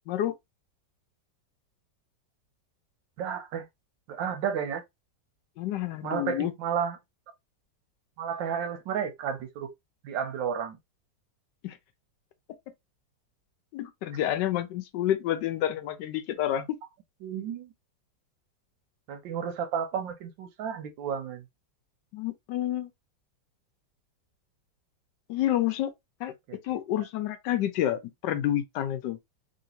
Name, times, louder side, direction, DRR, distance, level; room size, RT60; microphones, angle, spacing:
voice 1, 3.2-3.7 4.1-4.8 6.0-7.0 8.2-9.7 10.0-10.8 17.2-17.7 19.1-21.4 26.5-26.6, right 7 dB, 85° right, 1.4 m, -32 dB
voice 2, 5.6-6.5 11.6-11.8 13.7-16.7 22.1-22.9 25.3-25.9 26.2-26.3 26.6-29.2, left 12 dB, 75° left, 1.2 m, -29 dB
3.1 x 2.8 x 2.7 m
omnidirectional pair, 2.0 m